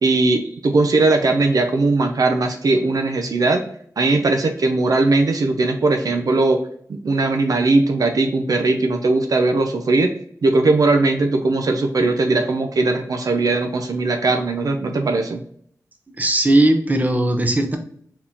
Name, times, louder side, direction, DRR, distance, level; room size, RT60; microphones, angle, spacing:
voice 1, 0.0-3.6 4.0-6.6 6.9-10.1 10.4-15.4, right 3 dB, 70° right, 5 dB, 0.5 m, -19 dB
voice 2, 16.2-17.8, right 1 dB, 25° right, 5 dB, 0.7 m, -17 dB
4.7 x 3.6 x 2.7 m, 0.63 s
wide cardioid pair, 115°, 6 cm